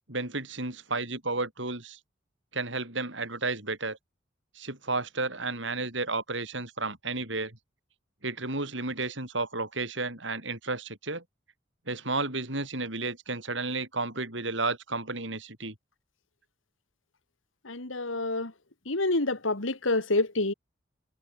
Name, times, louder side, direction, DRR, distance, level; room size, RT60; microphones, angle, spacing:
voice 1, 0.1-2.0 2.5-4.0 4.6-7.6 8.2-11.2 11.9-15.7, right 3 dB, 70° right, 7.1 m, -32 dB
voice 2, 17.8-18.5 18.9-20.5, left 2 dB, 85° left, 2.6 m, -27 dB
head